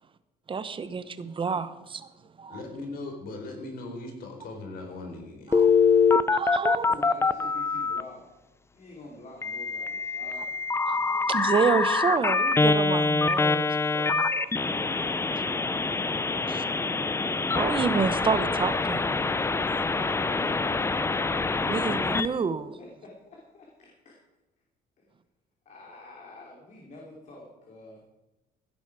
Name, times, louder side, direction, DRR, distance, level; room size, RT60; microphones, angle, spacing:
voice 1, 0.5-2.1 2.4-2.6 5.5-5.7 6.3-6.9 10.9-14.5 14.8-14.9 16.5-16.6 17.5-19.1 21.7-22.8, right 5 dB, 30° right, 0.9 m, -29 dB
voice 2, 2.5-5.6, left 2 dB, 60° left, 4.1 m, -39 dB
Telephone, 5.5-8.0 9.4-22.3, left 4 dB, 15° left, 0.5 m, -25 dB
voice 3, 6.9-8.3 8.7-10.6 20.1-21.1 21.5-22.0 22.8-24.2 25.0-25.1 25.6-28.0, left 2 dB, 45° left, 3.0 m, -46 dB
16.0 x 10.5 x 4.8 m
cardioid pair, 110°, 17 cm